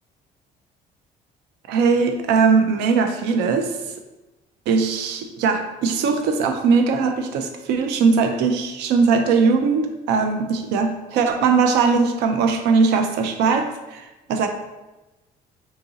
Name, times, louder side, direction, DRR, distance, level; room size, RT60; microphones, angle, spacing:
voice 1, 1.7-3.8 4.7-14.5, right 5 dB, 85° right, 6 dB, 0.4 m, -20 dB
2.9 x 2.6 x 3.7 m, 1.1 s
cardioid pair, 110°, 17 cm